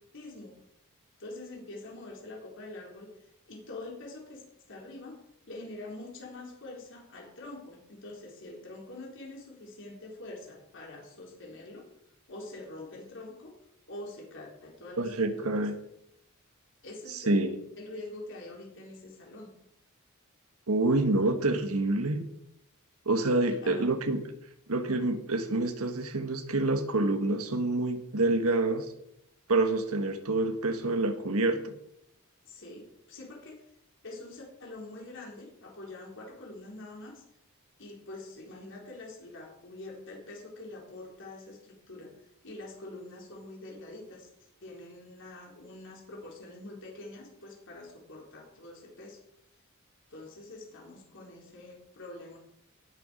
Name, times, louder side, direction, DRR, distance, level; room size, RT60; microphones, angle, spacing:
voice 1, 0.1-0.5 1.2-3.1 3.5-4.4 4.7-5.2 5.5-11.9 12.3-13.6 13.9-15.1 15.4-15.6 16.8-17.4 17.8-19.5 23.5-23.9 32.4-33.6 34.0-37.2 37.8-42.1 42.4-44.3 44.6-49.2 50.1-52.4, left 2 dB, 60° left, -1 dB, 4.0 m, -45 dB
voice 2, 15.0-15.7 17.1-17.5 20.7-22.2 23.0-24.2 24.7-28.9 29.5-31.7, right 2 dB, 80° right, 7 dB, 1.4 m, -27 dB
18.0 x 7.0 x 5.2 m, 0.76 s
head